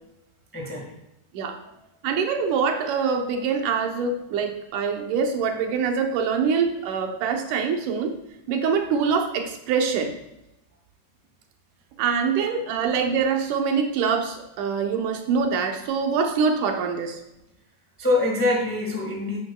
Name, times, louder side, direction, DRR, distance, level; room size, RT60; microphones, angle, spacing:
voice 1, 0.5-1.0 1.4-1.5 18.0-19.4, left 2 dB, 10° left, 0 dB, 0.7 m, -24 dB
voice 2, 2.0-8.1 8.5-10.1 12.0-17.2, right 6 dB, 90° right, 4 dB, 2.5 m, -24 dB
10.5 x 9.3 x 2.3 m, 0.87 s
omnidirectional pair, 3.5 m